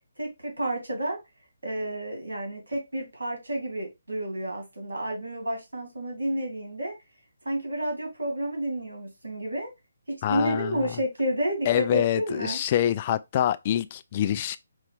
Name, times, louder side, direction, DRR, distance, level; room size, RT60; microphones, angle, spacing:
voice 1, 0.2-1.2 1.6-6.9 7.4-9.7 10.1-12.6, right 1 dB, 80° right, 2.0 m, -30 dB
voice 2, 10.2-10.9 11.7-14.6, left 11 dB, 30° left, 0.3 m, -26 dB
5.5 x 2.4 x 3.4 m
figure-of-eight pair, 145°, 0 cm